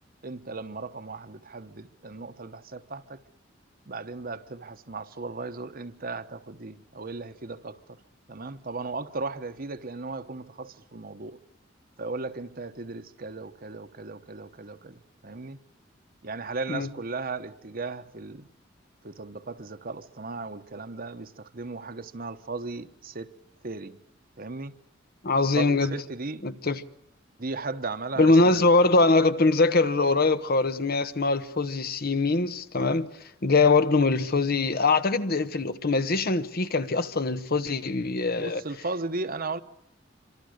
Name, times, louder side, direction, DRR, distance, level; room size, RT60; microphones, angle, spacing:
voice 1, 0.2-3.2 3.9-8.0 8.3-11.4 12.0-15.6 16.2-18.5 19.0-23.3 23.6-24.0 24.4-24.7 25.6-26.4 27.4-28.7 38.4-39.6, right 3 dB, 50° right, 1.2 m, -36 dB
voice 2, 25.2-26.0 26.4-26.8 28.2-33.1 33.4-38.6, left 3 dB, 55° left, 1.1 m, -23 dB
26.0 x 25.5 x 6.6 m
head